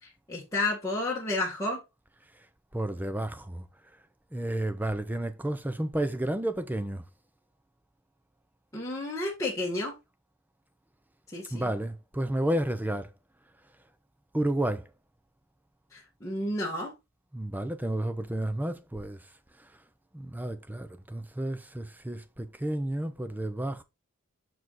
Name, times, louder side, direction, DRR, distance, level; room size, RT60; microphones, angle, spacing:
voice 1, 0.0-1.8 8.7-9.9 11.3-11.7 15.9-16.9, left 2 dB, 15° left, 1.5 m, -31 dB
voice 2, 2.7-3.6 4.3-7.0 11.5-13.1 14.3-14.8 17.3-19.2 20.1-23.8, right 1 dB, 10° right, 0.6 m, -31 dB
6.2 x 4.7 x 3.9 m
head